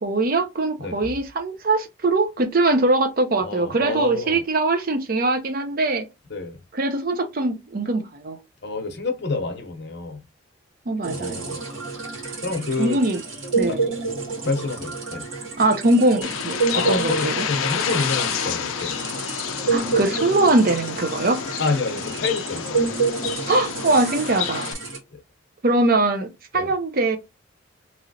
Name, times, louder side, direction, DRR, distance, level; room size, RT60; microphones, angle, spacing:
voice 1, 0.0-6.0 6.7-8.4 10.9-11.5 12.8-13.2 13.6-13.8 15.6-16.5 16.9-17.4 19.7-21.4 23.5-24.7 25.6-26.3 26.5-27.2, right 2 dB, 45° right, 0.6 m, -21 dB
voice 2, 3.4-4.4 6.3-6.6 8.6-10.2 11.1-11.6 12.4-13.0 13.7-13.8 14.4-15.3 16.7-19.0 21.6-22.9 25.1-25.2 26.5-26.7, left 3 dB, 55° left, 0.7 m, -28 dB
sound 1, 11.0-25.0, right 4 dB, 75° right, 1.9 m, -29 dB
Bird, 16.2-24.7, left 8 dB, 85° left, 0.4 m, -29 dB
3.1 x 2.8 x 2.7 m
head